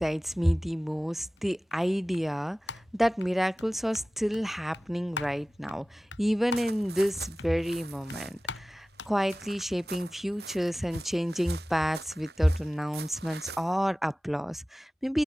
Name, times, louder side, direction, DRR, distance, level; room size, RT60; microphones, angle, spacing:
voice 1, 0.0-15.2, equal, ahead, 2.2 m, -29 dB
sound 1, 1.4-11.0, left 4 dB, 90° left, 2.4 m, -45 dB
sound 2, 6.5-8.5 8.8-13.8, right 7 dB, 65° right, 3.1 m, -45 dB
head